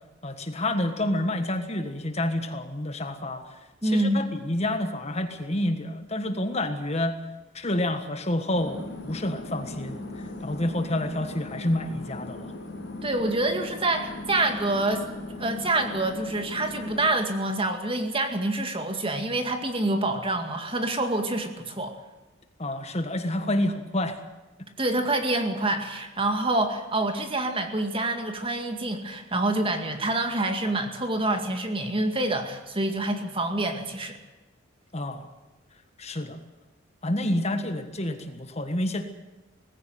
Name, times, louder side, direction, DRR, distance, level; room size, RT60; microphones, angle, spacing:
voice 1, 0.2-3.4 3.8-7.1 7.5-10.0 10.4-12.5 22.6-24.1 34.9-35.3 36.0-36.4 37.0-39.0, left 1 dB, 30° left, 7 dB, 1.5 m, -28 dB
voice 2, 3.8-4.3 13.0-15.0 15.4-21.9 24.8-34.2, right 2 dB, 25° right, 6 dB, 2.2 m, -27 dB
sound 1, 8.5-17.1, left 2 dB, 60° left, 3.4 m, -38 dB
19.5 x 16.0 x 9.3 m, 1.1 s
head